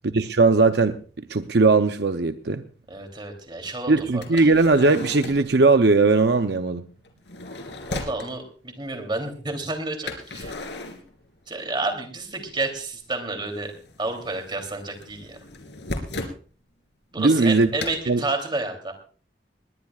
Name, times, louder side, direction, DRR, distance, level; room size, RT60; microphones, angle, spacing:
voice 1, 0.0-1.0 1.3-2.6 3.9-6.8 17.2-17.7 18.1-18.2, right 3 dB, 70° right, 0.7 m, -19 dB
sound 1, 1.1-1.2 1.9-2.0 4.2-5.6 7.0-8.3 10.1-11.7 12.0-12.9 13.1-16.4 17.8-18.0, left 2 dB, 85° left, 2.9 m, -36 dB
voice 2, 2.9-4.5 7.9-10.6 11.5-13.7 14.0-15.4 17.1-18.9, right 2 dB, 25° right, 3.1 m, -30 dB
20.5 x 19.0 x 2.4 m
head